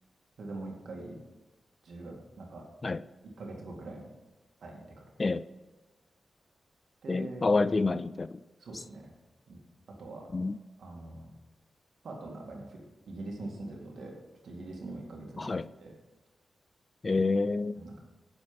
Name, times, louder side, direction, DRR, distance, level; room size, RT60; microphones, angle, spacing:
voice 1, 0.4-1.2 1.8-2.6 3.4-4.1 4.6-5.1 7.0-7.4 8.6-9.1 9.5-9.6 10.0-10.3 10.8-11.3 12.0-14.1 14.4-15.9 17.8-18.0, right 2 dB, 80° right, 2.2 m, -43 dB
voice 2, 7.1-8.4 10.3-10.6 15.4-15.7 17.0-17.8, left 3 dB, 40° left, 0.3 m, -28 dB
9.8 x 7.0 x 5.3 m
cardioid pair, 80°, 0 cm